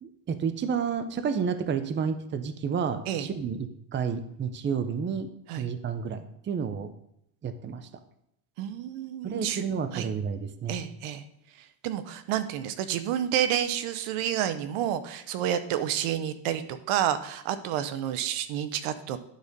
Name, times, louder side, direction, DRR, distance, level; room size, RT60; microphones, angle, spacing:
voice 1, 0.0-5.3 5.6-6.9 7.4-7.9 9.2-10.8, right 6 dB, 25° right, 11 dB, 0.6 m, -30 dB
voice 2, 8.6-9.6 9.9-10.1 10.7-11.2 11.8-19.2, right 10 dB, 85° right, 11 dB, 0.9 m, -29 dB
11.5 x 4.2 x 5.2 m, 0.76 s
cardioid pair, 140°, 49 cm